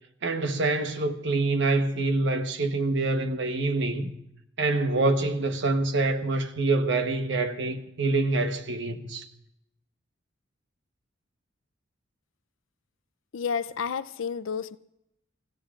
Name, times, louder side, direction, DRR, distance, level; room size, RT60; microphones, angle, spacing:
voice 1, 0.2-4.1 4.6-9.2, right 2 dB, 65° right, 1.1 m, -26 dB
voice 2, 13.3-14.8, left 6 dB, 75° left, 0.5 m, -30 dB
27.5 x 15.5 x 2.5 m
head